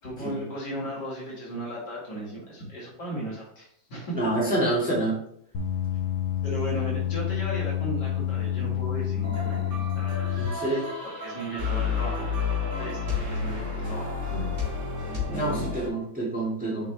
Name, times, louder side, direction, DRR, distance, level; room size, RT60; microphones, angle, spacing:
voice 1, 0.0-4.2 6.4-10.3 11.0-14.5 15.3-15.7, right 1 dB, 60° left, -5 dB, 2.8 m, -36 dB
voice 2, 4.1-5.2 10.4-10.9 15.3-16.9, right 1 dB, 5° right, -6 dB, 2.0 m, -27 dB
sound 1, 5.5-10.5, left 10 dB, 85° left, 1.8 m, -28 dB
sound 2, 9.2-15.9, left 5 dB, 35° right, 2.5 m, -31 dB
7.1 x 4.9 x 3.4 m, 0.68 s
omnidirectional pair, 2.1 m